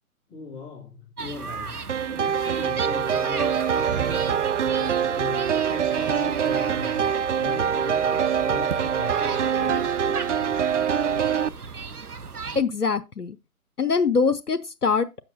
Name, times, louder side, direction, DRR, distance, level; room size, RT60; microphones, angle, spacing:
voice 1, 0.3-11.1, left 4 dB, 10° left, 2.6 m, -40 dB
sound 1, 1.2-12.6, right 5 dB, 80° right, 1.0 m, -36 dB
sound 2, 1.9-11.5, right 8 dB, 55° right, 0.5 m, -24 dB
voice 2, 12.5-13.4 13.8-15.1, left 5 dB, 85° left, 1.0 m, -23 dB
10.0 x 7.7 x 4.0 m
figure-of-eight pair, 135°, 44 cm